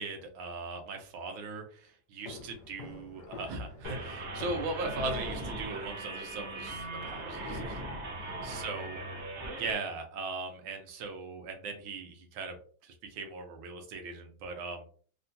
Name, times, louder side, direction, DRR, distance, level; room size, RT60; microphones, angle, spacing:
voice 1, 0.0-7.8 8.4-9.0 9.5-12.5 12.8-14.9, right 3 dB, 85° right, 4 dB, 1.6 m, -39 dB
sound 1, 2.2-5.9, left 2 dB, 65° left, 1.1 m, -45 dB
sound 2, 3.8-9.7, right 2 dB, 60° right, 0.7 m, -39 dB
3.8 x 2.2 x 2.6 m, 0.43 s
omnidirectional pair, 2.2 m